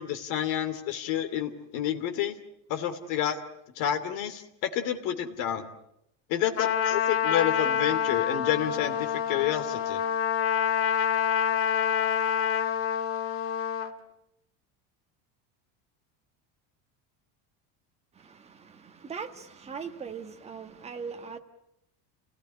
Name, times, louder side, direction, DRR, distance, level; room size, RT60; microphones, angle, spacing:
voice 1, 0.0-2.3 2.7-3.4 3.8-5.7 6.3-10.0, left 10 dB, 55° left, 2.8 m, -29 dB
Trumpet, 6.6-13.9, left 8 dB, 35° left, 1.9 m, -27 dB
voice 2, 18.2-21.4, right 6 dB, 15° right, 1.4 m, -40 dB
29.5 x 18.0 x 9.9 m
cardioid pair, 175°, 38 cm